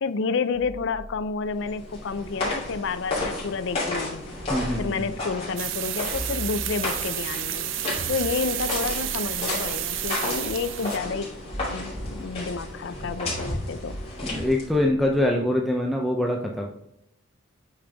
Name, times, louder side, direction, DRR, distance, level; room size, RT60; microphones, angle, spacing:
voice 1, 0.0-4.2 4.8-7.7 8.1-11.3 11.7-14.0, left 4 dB, 60° left, 13 dB, 0.4 m, -30 dB
sound 1, 0.5-3.3 4.4-5.5 6.1-7.2 8.0-10.2 11.5-12.6 13.2-15.4, equal, 35° right, 1.4 m, -41 dB
sound 2, 1.5-14.8, left 2 dB, 30° left, 3.0 m, -33 dB
voice 2, 4.5-5.1 14.2-16.7, left 1 dB, ahead, -1 dB, 0.5 m, -24 dB
sound 3, 5.6-11.0, right 12 dB, 60° right, 0.5 m, -31 dB
8.6 x 5.2 x 3.4 m, 0.82 s
head